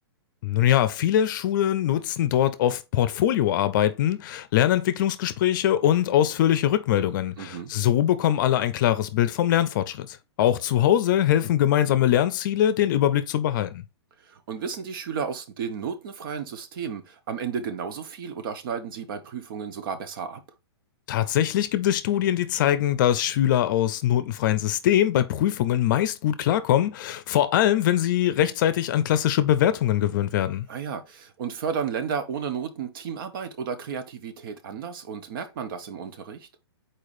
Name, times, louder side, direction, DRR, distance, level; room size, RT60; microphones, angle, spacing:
voice 1, 0.4-13.8 21.1-30.7, left 11 dB, 50° left, 0.6 m, -22 dB
voice 2, 7.4-7.7 14.2-20.4 30.7-36.5, right 6 dB, 55° right, 0.9 m, -33 dB
4.7 x 4.3 x 2.6 m
hypercardioid pair, 135°, 14 cm